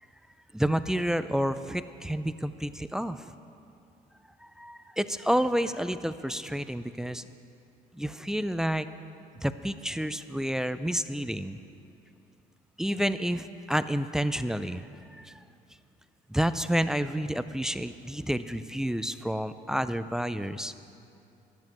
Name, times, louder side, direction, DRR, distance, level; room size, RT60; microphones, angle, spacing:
voice 1, 0.5-3.3 4.4-7.2 7.9-8.9 9.4-11.6 12.8-15.4 16.3-20.7, equal, 5° right, 12 dB, 0.3 m, -30 dB
11.5 x 7.3 x 7.7 m, 2.7 s
cardioid pair, 110°, 17 cm